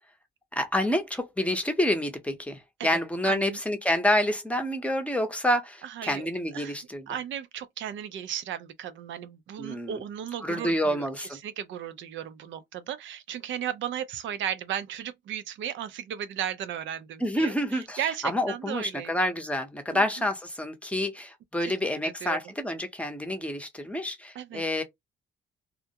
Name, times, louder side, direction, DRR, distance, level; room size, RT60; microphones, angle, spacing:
voice 1, 0.6-7.1 9.6-10.0 10.4-11.4 17.2-24.8, left 1 dB, 5° left, 0.7 m, -28 dB
voice 2, 3.2-3.6 5.8-6.3 6.5-6.8 7.1-19.1 19.9-20.0 21.6-21.7 22.0-22.5 24.3-24.6, right 9 dB, 70° right, 0.5 m, -35 dB
2.4 x 2.1 x 2.7 m
cardioid pair, 90°, 20 cm